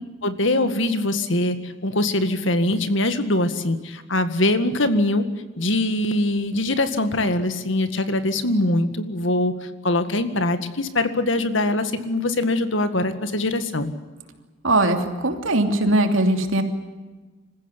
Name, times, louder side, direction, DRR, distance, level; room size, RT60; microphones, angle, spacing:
voice 1, 0.2-5.3 5.6-9.5 9.8-13.9, left 1 dB, 70° left, 10 dB, 1.9 m, -22 dB
voice 2, 14.6-15.0 15.2-16.6, right 2 dB, 80° right, 6 dB, 2.9 m, -19 dB
26.5 x 15.5 x 10.0 m, 1.3 s
head